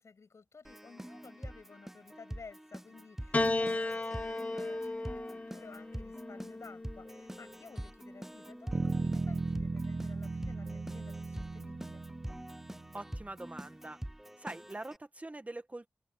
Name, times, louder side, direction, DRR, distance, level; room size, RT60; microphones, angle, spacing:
voice 1, 0.0-12.0, left 4 dB, 75° left, 6.4 m, -54 dB
Keyboard (musical), 0.6-15.0, equal, 5° right, 0.7 m, -45 dB
Piano, 3.3-7.8 8.8-9.6, left 2 dB, 30° left, 0.7 m, -36 dB
Bass guitar, 8.7-13.1, right 3 dB, 50° right, 1.0 m, -36 dB
voice 2, 12.9-14.0 14.4-15.9, right 2 dB, 30° right, 1.5 m, -43 dB
cardioid pair, 50°, 5 cm